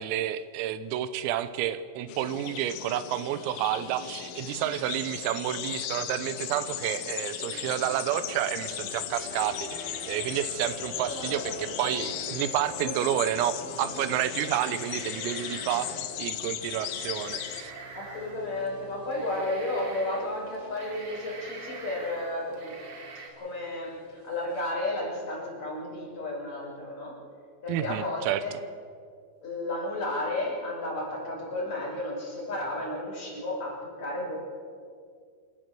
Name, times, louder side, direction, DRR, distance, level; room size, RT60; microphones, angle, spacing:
voice 1, 0.0-17.7 27.7-28.4, right 11 dB, 85° right, 13 dB, 3.5 m, -30 dB
sound 1, 2.1-17.6, left 12 dB, 80° left, 3.5 m, -37 dB
sound 2, 7.5-24.4, left 1 dB, 60° right, 7.5 m, -48 dB
sound 3, 9.1-10.8 11.7-12.6 13.8-13.9 14.4-16.1 16.8-18.6 19.1-20.2 20.5-23.3, right 3 dB, 40° right, 2.2 m, -46 dB
voice 2, 11.0-11.9 12.8-12.9 17.9-22.9 23.4-27.2 27.6-28.5 29.4-34.3, left 1 dB, 35° left, -4 dB, 6.8 m, -33 dB
27.0 x 13.0 x 7.6 m, 2.2 s
omnidirectional pair, 5.9 m